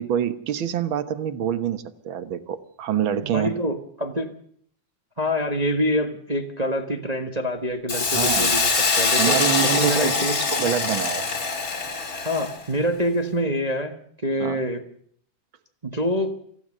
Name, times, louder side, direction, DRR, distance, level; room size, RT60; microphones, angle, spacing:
voice 1, 0.0-3.5 8.1-8.6 9.2-10.2 10.5-11.3 14.4-14.6, right 9 dB, 55° right, 12 dB, 1.6 m, -26 dB
voice 2, 3.2-4.3 5.2-10.4 12.2-14.0 14.2-14.8 15.8-16.3, equal, 25° right, 5 dB, 0.8 m, -26 dB
Hiss, 7.9-12.6, left 4 dB, 30° left, 2.8 m, -23 dB
25.0 x 16.0 x 6.7 m, 0.63 s
omnidirectional pair, 3.4 m